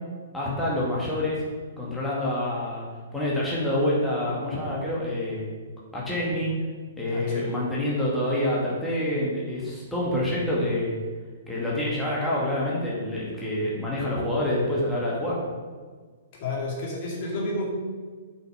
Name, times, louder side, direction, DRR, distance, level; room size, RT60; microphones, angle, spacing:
voice 1, 0.3-1.4 1.8-2.9 3.1-5.5 5.9-6.5 7.0-11.0 11.5-15.4, left 1 dB, 5° left, -6 dB, 2.3 m, -27 dB
voice 2, 7.1-7.7 16.4-17.7, left 2 dB, 40° left, -3 dB, 2.4 m, -31 dB
7.7 x 6.0 x 5.8 m, 1.5 s
figure-of-eight pair, 115°, 0 cm